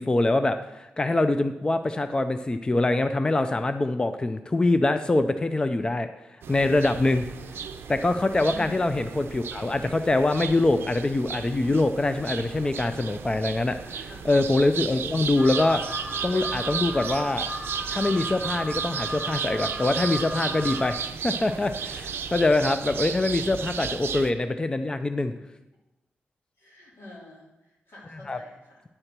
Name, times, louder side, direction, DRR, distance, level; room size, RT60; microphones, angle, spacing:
voice 1, 0.0-6.1 6.5-7.2 7.9-17.4 17.9-21.0 21.2-25.3 28.3-28.4, left 2 dB, 20° left, 9 dB, 0.4 m, -24 dB
sound 1, 6.4-24.3, right 7 dB, 80° right, 0.5 m, -34 dB
voice 2, 8.5-8.8 14.1-14.2 24.0-24.1 26.6-28.9, left 1 dB, 75° left, -3 dB, 2.8 m, -46 dB
Alarm, 15.4-20.9, right 1 dB, 35° left, 2.6 m, -36 dB
9.8 x 4.4 x 6.6 m, 0.98 s
cardioid pair, 85°, 4 cm